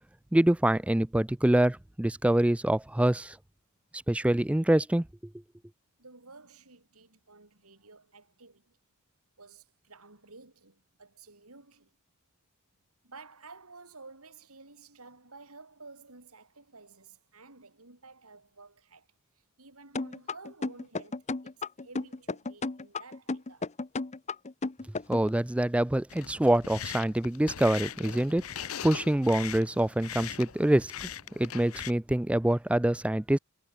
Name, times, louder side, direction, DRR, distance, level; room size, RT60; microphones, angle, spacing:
voice 1, 0.3-3.4 4.1-5.1 25.1-31.1 31.4-33.4, right 1 dB, 5° right, 0.3 m, -25 dB
voice 2, 6.0-8.8 9.4-11.9 13.0-19.1 19.6-23.7, right 3 dB, 90° right, 4.9 m, -52 dB
sound 1, 20.0-25.3, left 3 dB, 30° left, 0.7 m, -33 dB
sound 2, 26.1-31.9, left 9 dB, 75° left, 0.8 m, -40 dB
head